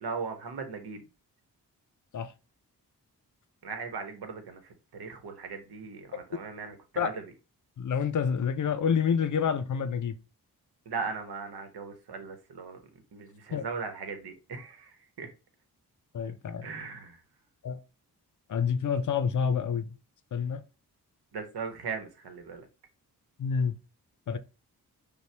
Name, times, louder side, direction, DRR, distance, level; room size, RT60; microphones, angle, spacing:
voice 1, 0.0-1.0 3.6-7.2 10.9-12.8 13.1-15.3 16.6-17.2 21.3-22.7, right 5 dB, 70° right, 1.1 m, -38 dB
voice 2, 7.8-10.2 13.5-13.7 16.1-16.7 17.6-17.8 18.5-19.9 20.3-20.6 23.4-23.8 24.3-24.4, left 7 dB, 50° left, 0.6 m, -28 dB
5.3 x 2.3 x 3.3 m
supercardioid pair, 45°, 40 cm